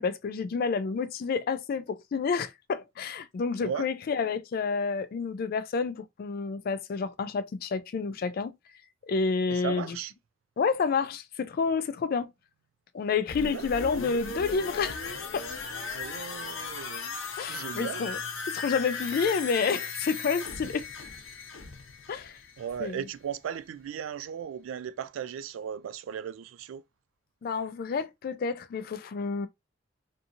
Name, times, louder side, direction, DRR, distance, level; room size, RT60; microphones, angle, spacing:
voice 1, 0.0-8.6 9.1-10.0 10.6-12.3 12.9-15.0 15.3-15.5 17.4-18.2 18.5-20.9 22.1-22.4 22.8-23.0 27.4-29.5, left 5 dB, 50° left, 0.3 m, -29 dB
voice 2, 9.5-10.1 13.4-14.0 15.9-17.2 17.5-18.0 22.6-26.8, right 8 dB, 90° right, 0.3 m, -37 dB
sound 1, 13.3-23.0 23.3-23.4, left 4 dB, 80° left, 0.7 m, -37 dB
2.6 x 2.4 x 2.6 m
head